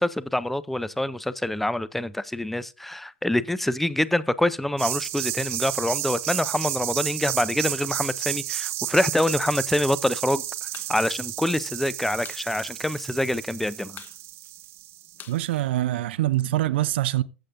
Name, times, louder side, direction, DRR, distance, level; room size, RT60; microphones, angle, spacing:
voice 1, 0.0-10.4 10.9-14.0, left 1 dB, ahead, 0.5 m, -26 dB
sound 1, 4.8-15.3, right 14 dB, 35° right, 1.2 m, -32 dB
sound 2, 10.6-11.0 11.2-11.3 11.6-12.5 12.8-12.9 13.2-13.6 13.9-16.3, left 9 dB, 25° left, 0.9 m, -46 dB
voice 2, 15.3-17.2, right 15 dB, 60° right, 0.6 m, -24 dB
15.0 x 7.7 x 2.6 m
figure-of-eight pair, 100°, 7 cm